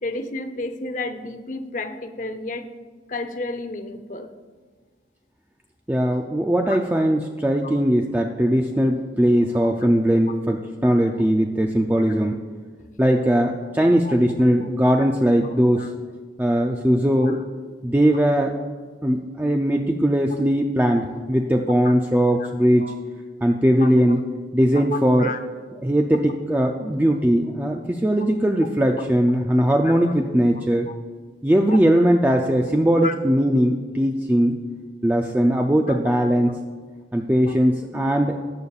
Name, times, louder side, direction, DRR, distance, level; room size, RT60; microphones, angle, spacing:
voice 1, 0.0-2.7 3.1-4.3 6.7-6.8 9.4-9.5 14.0-14.1 15.7-15.9 17.2-17.4 22.8-22.9 23.8-23.9 24.9-25.4 29.8-29.9 30.9-31.0 31.7-31.8 33.0-33.2 35.9-36.0 37.5-37.6, left 3 dB, 45° left, 9 dB, 0.7 m, -31 dB
voice 2, 5.9-12.3 13.0-15.9 16.4-17.4 17.8-18.5 19.0-22.8 23.4-24.2 24.5-25.3 25.8-30.9 31.4-34.6 35.0-36.6 37.1-38.4, equal, 10° right, 2 dB, 0.4 m, -20 dB
18.0 x 6.9 x 2.4 m, 1.5 s
head